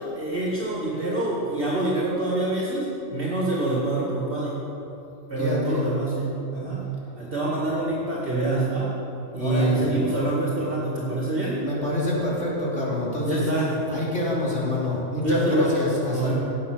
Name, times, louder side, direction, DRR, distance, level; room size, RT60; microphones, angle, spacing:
voice 1, 0.2-4.7 5.3-6.8 7.2-8.9 9.3-11.6 13.2-13.8 15.2-16.3, right 2 dB, 45° right, -6 dB, 2.5 m, -25 dB
voice 2, 5.4-5.9 9.4-9.8 11.6-16.3, left 1 dB, 65° left, -5 dB, 3.8 m, -27 dB
16.5 x 9.6 x 6.7 m, 3.0 s
omnidirectional pair, 1.3 m